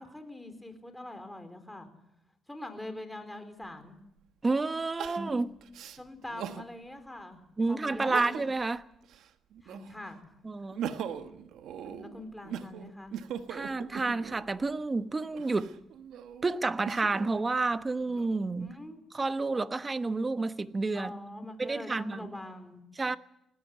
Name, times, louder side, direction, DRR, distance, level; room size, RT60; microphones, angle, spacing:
voice 1, 0.0-1.9 2.5-4.0 6.0-7.4 7.7-8.3 9.6-10.3 11.8-13.1 18.6-19.0 20.9-22.8, left 1 dB, 10° left, 4.3 m, -43 dB
Crying sobbing, 3.6-3.7 5.0-6.7 7.2-7.3 8.0-8.7 9.0-10.1 10.5-14.5 15.2-17.3 17.9-18.7, right 8 dB, 80° right, 1.3 m, -40 dB
voice 2, 4.4-5.6 7.6-8.8 10.4-10.9 13.5-15.8 16.4-18.7 19.1-21.1 21.6-22.3 23.0-23.2, right 3 dB, 25° right, 1.1 m, -30 dB
19.5 x 16.5 x 9.2 m
cardioid pair, 90°, 0 cm